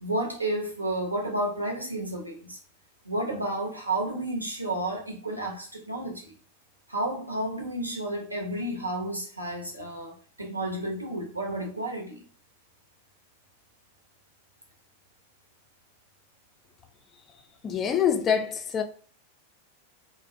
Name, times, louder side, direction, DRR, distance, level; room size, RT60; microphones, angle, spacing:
voice 1, 0.0-2.6 3.0-6.3 6.9-12.2, right 1 dB, 85° right, 0.6 m, -31 dB
voice 2, 17.6-18.8, left 8 dB, 25° left, 0.3 m, -25 dB
2.4 x 2.0 x 2.4 m
figure-of-eight pair, 90°, 0 cm